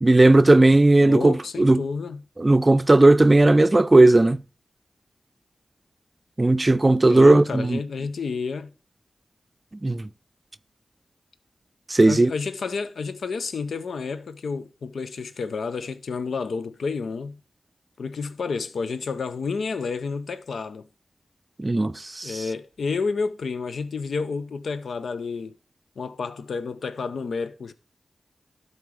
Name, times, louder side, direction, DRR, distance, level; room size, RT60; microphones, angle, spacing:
voice 1, 0.0-1.8 2.4-4.4 6.4-7.8 9.8-10.1 11.9-12.3 21.6-22.4, right 2 dB, 35° right, 0.4 m, -16 dB
voice 2, 1.0-2.2 7.1-8.7 12.0-17.4 18.0-20.9 22.2-25.5 26.0-27.7, left 4 dB, 90° left, 0.5 m, -30 dB
12.0 x 4.2 x 5.0 m
cardioid pair, 50°, 0 cm